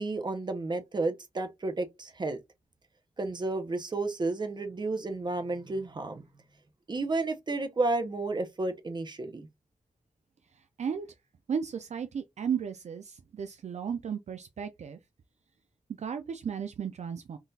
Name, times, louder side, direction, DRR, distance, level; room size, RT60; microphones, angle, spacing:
voice 1, 0.0-2.4 3.2-6.2 6.9-9.5, right 2 dB, 35° right, 0.7 m, -32 dB
voice 2, 11.5-15.0 16.0-17.4, right 7 dB, 60° right, 0.4 m, -34 dB
3.8 x 2.4 x 2.6 m
wide cardioid pair, 95°, 13 cm